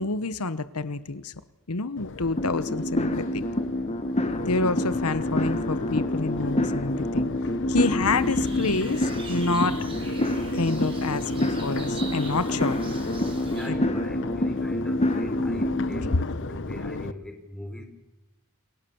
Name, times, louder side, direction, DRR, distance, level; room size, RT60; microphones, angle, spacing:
voice 1, 0.0-1.3 1.7-3.4 4.5-7.3 7.7-9.8 10.5-12.8 13.7-13.9, left 3 dB, 80° left, 13 dB, 1.1 m, -28 dB
Crowd, 2.0-17.1, left 3 dB, 60° left, 1.1 m, -35 dB
sound 1, 2.4-16.2, left 1 dB, 30° left, 1.7 m, -27 dB
sound 2, 8.0-13.7, right 3 dB, 25° right, 5.1 m, -43 dB
voice 2, 13.4-17.8, left 1 dB, 5° left, 4 dB, 4.4 m, -41 dB
29.5 x 23.0 x 7.1 m, 0.97 s
head